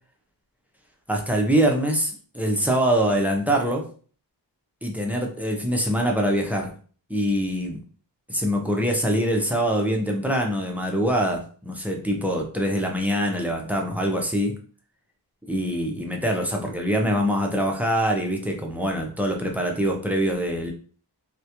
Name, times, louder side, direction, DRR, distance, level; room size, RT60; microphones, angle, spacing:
voice 1, 1.1-3.9 4.8-6.7 7.1-7.8 8.3-14.5 15.5-20.7, equal, 5° right, 1 dB, 0.4 m, -24 dB
2.3 x 2.1 x 2.8 m, 0.42 s
wide cardioid pair, 120°, 41 cm